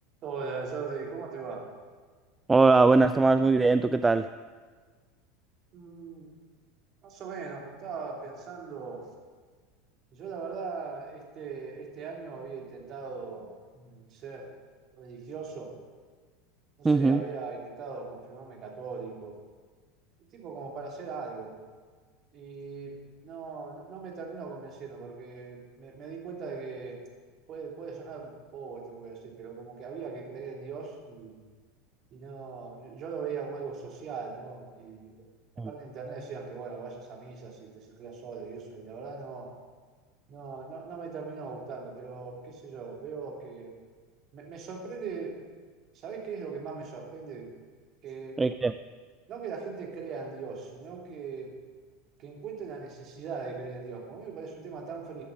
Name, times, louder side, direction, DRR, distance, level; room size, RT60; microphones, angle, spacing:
voice 1, 0.2-1.6 5.7-6.3 7.0-9.0 10.1-14.5 15.0-15.7 16.8-19.4 20.3-21.5 22.3-27.0 27.5-31.4 32.1-35.2 35.5-39.5 40.3-43.7 44.3-45.4 45.9-47.5 48.0-48.4 49.3-51.5 52.2-55.2, right 5 dB, 40° right, 0 dB, 3.0 m, -40 dB
voice 2, 2.5-4.3 16.8-17.2 35.6-35.7 48.4-48.7, right 3 dB, 15° right, 12 dB, 0.4 m, -21 dB
13.5 x 12.5 x 5.1 m, 1.5 s
figure-of-eight pair, 80°, 0 cm